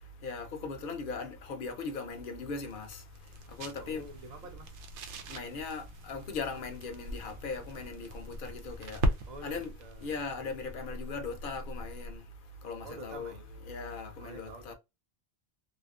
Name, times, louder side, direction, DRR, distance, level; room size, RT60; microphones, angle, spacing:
voice 1, 0.2-3.0 3.6-4.0 5.3-9.0 9.4-9.7 10.0-12.2 12.6-13.3 13.7-14.7, left 4 dB, 60° left, 0.7 m, -39 dB
sound 1, 1.6-12.3, right 1 dB, 90° right, 0.9 m, -40 dB
voice 2, 3.8-4.8 9.3-10.2 12.8-14.7, right 3 dB, 50° right, 0.6 m, -49 dB
2.6 x 2.4 x 2.3 m
omnidirectional pair, 1.1 m